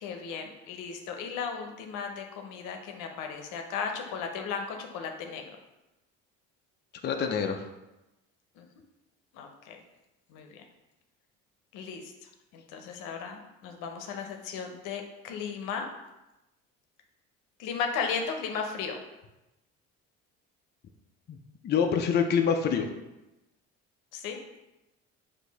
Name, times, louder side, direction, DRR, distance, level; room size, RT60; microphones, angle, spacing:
voice 1, 0.0-5.4 8.6-8.7 9.3-9.8 10.3-10.6 11.7-12.1 12.5-15.9 17.6-19.0 24.1-24.4, left 6 dB, 75° left, 4 dB, 0.7 m, -35 dB
voice 2, 7.0-7.6 21.3-21.4 21.6-22.9, left 6 dB, 35° left, 4 dB, 0.5 m, -26 dB
4.5 x 2.6 x 4.0 m, 0.99 s
supercardioid pair, 95°, 31 cm